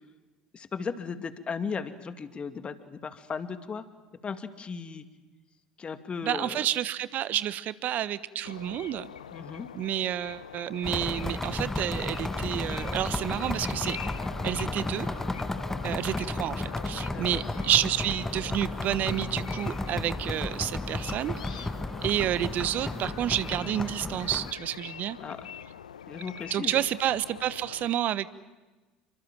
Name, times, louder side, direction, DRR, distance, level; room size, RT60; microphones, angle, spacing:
voice 1, 0.5-3.8 4.2-5.0 5.8-6.6 9.3-9.7 17.1-17.5 25.2-25.5 26.1-26.8, left 5 dB, 30° left, 10 dB, 2.3 m, -36 dB
voice 2, 6.2-9.1 9.7-14.0 14.4-15.1 15.8-21.7 22.0-25.2 26.5-28.3, right 12 dB, 45° right, 17 dB, 1.2 m, -30 dB
sound 1, 8.4-27.9, left 8 dB, 75° left, 1.0 m, -44 dB
sound 2, 10.8-24.5, left 2 dB, 10° left, 1.4 m, -33 dB
29.5 x 25.0 x 7.6 m, 1.2 s
figure-of-eight pair, 65°, 4 cm